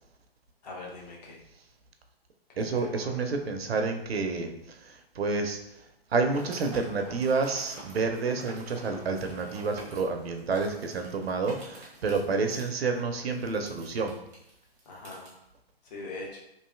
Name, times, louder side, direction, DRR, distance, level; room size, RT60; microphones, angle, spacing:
voice 1, 0.6-1.4 2.5-3.2 14.9-15.4 15.8-16.4, left 2 dB, 40° left, -2 dB, 0.8 m, -42 dB
voice 2, 2.6-4.5 4.8-5.6 6.1-14.1, right 4 dB, 75° right, 5 dB, 0.5 m, -29 dB
sound 1, 6.3-15.3, right 1 dB, 10° right, 0.5 m, -48 dB
3.1 x 2.5 x 2.3 m, 0.80 s
figure-of-eight pair, 130°, 31 cm